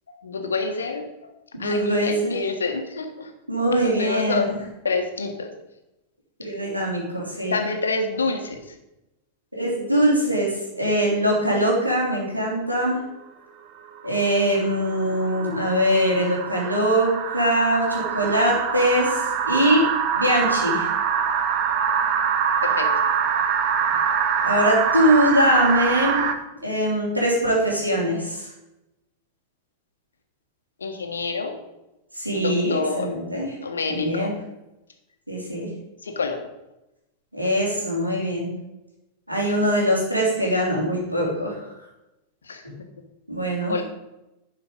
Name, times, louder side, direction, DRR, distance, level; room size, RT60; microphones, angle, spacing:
voice 1, 0.1-1.0 1.6-3.3 3.8-4.5 4.8-5.5 7.1-8.6 22.6-22.9 23.3-23.4 30.8-31.5 32.3-33.1 33.6-34.3 36.0-36.4 42.5-42.6 43.7-43.8, left 4 dB, 70° left, 5 dB, 1.4 m, -27 dB
voice 2, 1.5-2.4 3.5-4.5 6.4-7.5 9.5-13.0 14.0-19.8 20.1-20.9 24.4-26.2 26.6-28.5 32.1-33.5 33.9-34.3 35.3-35.7 37.3-38.5 39.3-41.6 42.6-42.8 43.3-43.7, equal, 85° right, -3 dB, 3.2 m, -22 dB
sound 1, 9.7-11.3 11.6-12.3 13.9-26.3, right 7 dB, 40° right, 0.9 m, -25 dB
11.0 x 5.7 x 5.3 m, 0.94 s
figure-of-eight pair, 90°, 0 cm